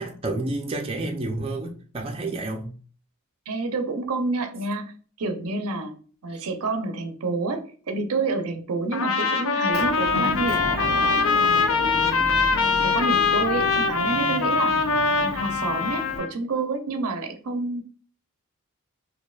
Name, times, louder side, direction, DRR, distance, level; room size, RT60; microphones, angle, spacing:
voice 1, 0.0-2.7 6.3-6.5, right 2 dB, 25° right, 1 dB, 0.4 m, -30 dB
voice 2, 3.5-6.0 6.2-11.0 11.4-14.9 15.2-17.8, right 3 dB, 75° right, 7 dB, 0.5 m, -29 dB
Trumpet, 8.9-16.3, left 4 dB, 65° left, 0.4 m, -23 dB
Motor vehicle (road) / Engine, 9.7-16.2, left 1 dB, 40° left, 0.8 m, -33 dB
4.1 x 2.8 x 2.3 m, 0.41 s
head